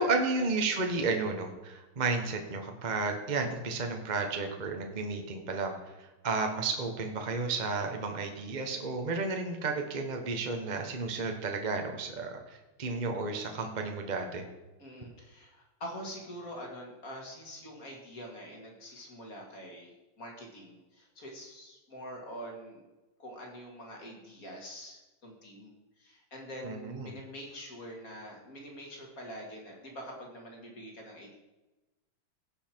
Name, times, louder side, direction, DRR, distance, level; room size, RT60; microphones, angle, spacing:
voice 1, 0.0-14.5 26.6-27.1, right 3 dB, 30° right, 4 dB, 0.8 m, -32 dB
voice 2, 14.8-22.8 23.2-31.3, equal, 40° left, 0 dB, 2.5 m, -45 dB
16.5 x 5.5 x 4.5 m, 1.1 s
omnidirectional pair, 2.4 m